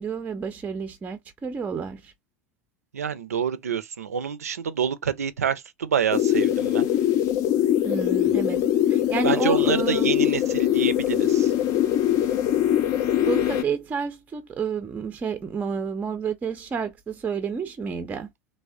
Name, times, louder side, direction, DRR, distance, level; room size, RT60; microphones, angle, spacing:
voice 1, 0.0-2.1 7.8-10.1 13.3-18.3, right 6 dB, 20° right, 0.5 m, -30 dB
voice 2, 2.9-6.9 9.2-11.5, right 7 dB, 80° right, 0.4 m, -27 dB
sound 1, 6.1-13.6, left 11 dB, 45° left, 0.5 m, -22 dB
3.3 x 2.1 x 2.4 m
figure-of-eight pair, 80°, 8 cm